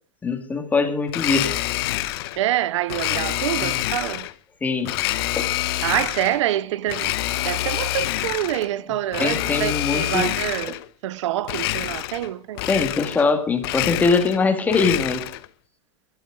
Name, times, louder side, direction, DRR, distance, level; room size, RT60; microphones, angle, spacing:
voice 1, 0.2-1.6 3.6-3.7 4.6-4.9 5.4-5.5 9.2-10.3 10.7-10.8 12.7-15.2, left 4 dB, 10° left, 1.7 m, -22 dB
Domestic sounds home sounds, 1.1-2.4 2.9-4.3 4.8-6.4 6.9-8.7 9.1-10.8 11.4-12.3 12.5-13.3 13.6-15.5, left 16 dB, 45° left, 0.9 m, -26 dB
voice 2, 2.4-4.3 5.8-7.2 7.4-10.8 11.0-12.6, right 13 dB, 60° right, 0.6 m, -26 dB
22.0 x 12.5 x 3.7 m
supercardioid pair, 175°, 17 cm